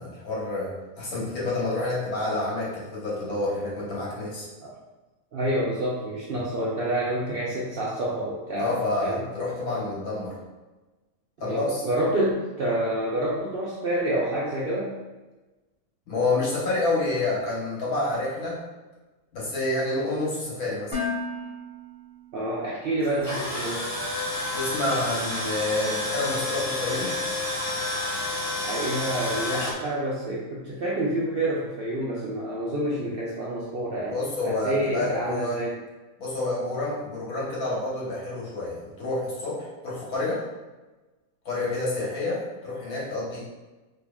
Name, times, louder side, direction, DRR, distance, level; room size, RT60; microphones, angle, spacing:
voice 1, 0.0-4.5 8.6-10.3 11.4-11.8 16.1-18.6 19.3-20.9 24.5-27.1 34.1-35.6 36.2-40.4 41.4-43.4, left 2 dB, 80° left, -6 dB, 1.5 m, -28 dB
voice 2, 5.3-9.3 11.4-14.9 22.3-23.9 28.6-34.2 34.4-35.8, right 1 dB, 70° right, -6 dB, 0.5 m, -28 dB
Dishes pots and pans, 20.9-23.0, left 3 dB, 5° right, 1.0 m, -34 dB
Tools, 23.0-29.7, left 2 dB, 25° left, 0.3 m, -30 dB
4.3 x 2.6 x 2.3 m, 1.2 s
omnidirectional pair, 1.6 m